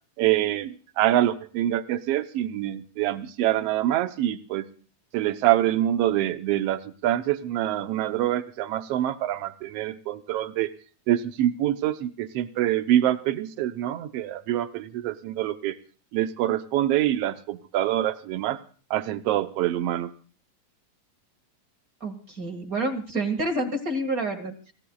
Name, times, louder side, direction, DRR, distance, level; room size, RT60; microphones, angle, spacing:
voice 1, 0.2-4.6 5.1-10.7 11.1-15.8 16.1-18.6 18.9-20.1, right 13 dB, 80° right, 10 dB, 1.3 m, -25 dB
voice 2, 22.0-24.7, right 2 dB, 35° right, 4 dB, 1.7 m, -28 dB
30.0 x 16.0 x 2.3 m, 0.40 s
omnidirectional pair, 3.8 m